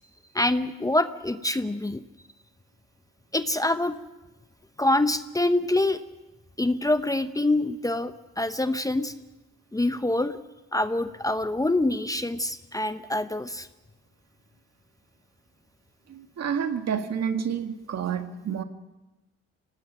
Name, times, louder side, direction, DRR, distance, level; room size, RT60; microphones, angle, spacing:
voice 1, 0.3-2.0 3.3-4.0 4.8-6.0 6.6-9.1 9.7-10.4 10.7-13.7, left 2 dB, 10° left, 10 dB, 0.8 m, -25 dB
voice 2, 16.1-18.6, right 7 dB, 60° right, 7 dB, 1.8 m, -29 dB
26.5 x 18.5 x 6.1 m, 1.0 s
cardioid pair, 90°, 30 cm